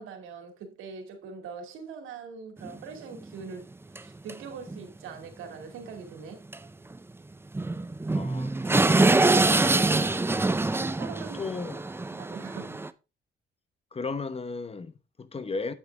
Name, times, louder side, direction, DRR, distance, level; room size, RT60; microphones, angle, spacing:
voice 1, 0.0-6.4 10.8-11.4 12.0-12.8, right 5 dB, 90° right, 2.6 m, -42 dB
sound 1, 2.6-2.7 3.1-3.2 4.0-4.1 4.3-4.4 4.7-4.8 6.5-6.6 6.9-7.0 7.5-12.9, right 2 dB, 10° right, 0.6 m, -24 dB
voice 2, 8.1-9.5 11.3-11.8 13.9-15.7, left 4 dB, 30° left, 1.0 m, -36 dB
8.6 x 8.5 x 3.5 m
cardioid pair, 90°, 20 cm